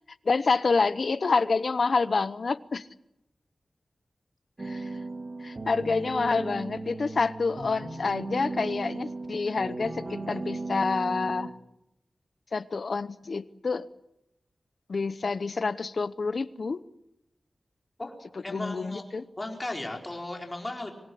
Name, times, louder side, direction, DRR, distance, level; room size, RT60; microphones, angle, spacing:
voice 1, 0.2-2.9 4.6-4.9 5.4-11.6 12.5-13.9 14.9-16.8 18.5-19.2, left 4 dB, 60° left, 15 dB, 0.9 m, -28 dB
sound 1, 4.6-11.5, right 2 dB, 45° right, 2.2 m, -36 dB
voice 2, 18.4-19.0 19.4-20.9, left 2 dB, 25° left, 2 dB, 4.4 m, -35 dB
25.5 x 19.5 x 8.5 m, 0.88 s
wide cardioid pair, 105°, 0 cm